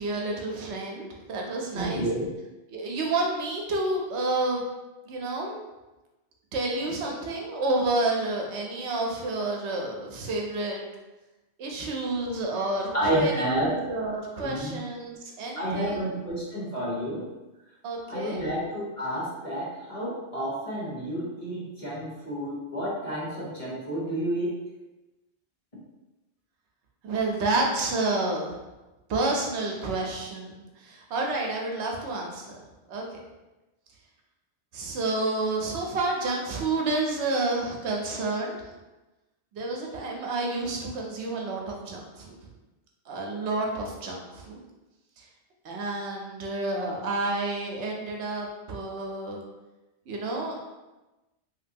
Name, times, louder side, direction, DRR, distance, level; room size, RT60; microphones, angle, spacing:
voice 1, 0.0-2.0 2.7-4.7 5.1-5.6 6.5-10.8 11.6-16.0 17.8-18.4 27.0-28.6 29.1-32.6 32.9-33.2 34.7-38.8 39.5-42.5 43.1-44.6 45.2-45.3 45.6-49.4 50.1-50.6, right 2 dB, 75° right, 0 dB, 0.9 m, -30 dB
voice 2, 1.7-2.3 12.9-13.7 14.4-14.8 15.5-17.3 18.1-24.6, right 1 dB, 35° left, -7 dB, 0.9 m, -30 dB
3.0 x 2.9 x 2.6 m, 1.1 s
omnidirectional pair, 1.2 m